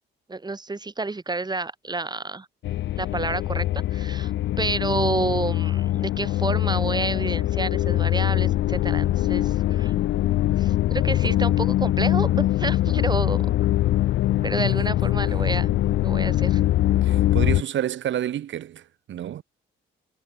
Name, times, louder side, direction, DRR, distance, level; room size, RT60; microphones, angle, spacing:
voice 1, 0.3-2.5 3.0-4.3 4.6-9.9 10.6-13.5 14.4-15.7 16.0-16.6, right 3 dB, 20° right, 5.1 m, -29 dB
sound 1, 2.6-17.6, left 14 dB, 70° left, 0.6 m, -23 dB
voice 2, 17.0-19.4, right 11 dB, 70° right, 3.0 m, -29 dB
cardioid pair, 90°, 20 cm